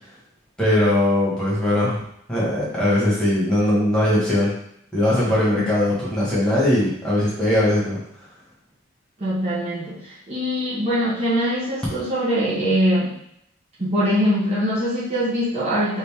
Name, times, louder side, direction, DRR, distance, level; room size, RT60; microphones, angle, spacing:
voice 1, 0.6-2.0 2.3-4.5 4.9-8.0, left 1 dB, 5° left, -8 dB, 1.5 m, -20 dB
voice 2, 9.2-13.1 13.8-16.0, equal, 30° right, -10 dB, 1.1 m, -22 dB
5.2 x 2.7 x 3.6 m, 0.73 s
head